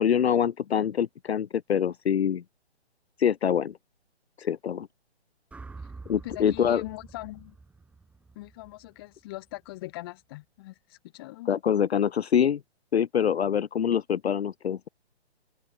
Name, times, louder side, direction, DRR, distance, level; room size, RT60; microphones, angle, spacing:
voice 1, 0.0-2.4 3.2-3.8 4.4-4.9 6.1-6.8 11.5-12.6 12.9-14.9, left 8 dB, 70° left, 0.7 m, -25 dB
sound 1, 5.5-9.7, right 4 dB, 5° right, 2.8 m, -47 dB
voice 2, 6.2-7.6 8.3-11.5, left 19 dB, 20° left, 1.6 m, -41 dB
open air
hypercardioid pair, 160°, 33 cm